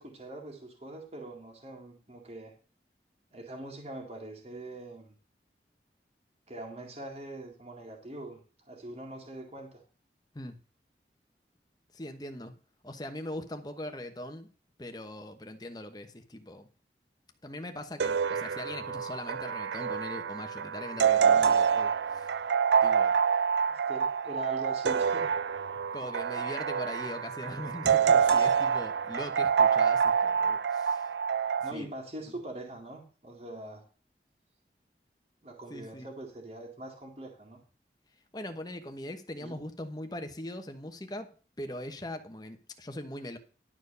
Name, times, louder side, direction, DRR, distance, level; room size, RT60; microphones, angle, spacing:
voice 1, 0.0-2.5 3.3-5.1 6.5-9.8 21.3-21.6 23.7-25.4 31.6-33.8 35.4-37.6 39.4-39.6, right 1 dB, 35° right, 2.0 m, -43 dB
voice 2, 11.9-12.5 12.8-14.5 14.8-16.7 17.4-22.4 22.8-23.1 25.9-31.1 31.7-31.9 35.7-36.1 38.3-41.3 41.6-43.4, left 1 dB, 25° left, 1.1 m, -41 dB
sound 1, 18.0-31.7, right 7 dB, 80° right, 0.4 m, -27 dB
11.5 x 4.5 x 6.8 m
head